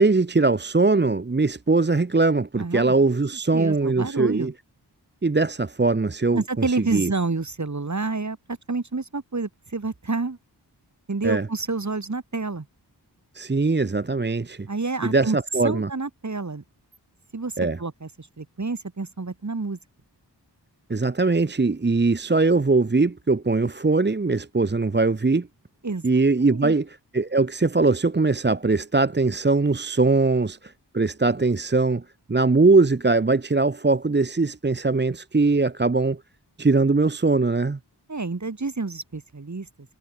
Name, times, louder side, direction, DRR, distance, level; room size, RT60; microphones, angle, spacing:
voice 1, 0.0-4.5 5.2-7.1 11.2-11.5 13.3-14.7 15.0-15.9 17.6-17.8 20.9-25.5 26.0-36.2 36.6-37.8, right 3 dB, 25° right, 0.8 m, -21 dB
voice 2, 2.5-2.9 3.5-4.5 6.3-10.4 11.1-12.7 14.7-15.4 15.6-16.6 17.3-17.5 17.8-19.8 25.8-26.0 26.4-26.7 38.1-39.7, right 3 dB, 40° right, 2.0 m, -29 dB
cardioid pair, 40°, 42 cm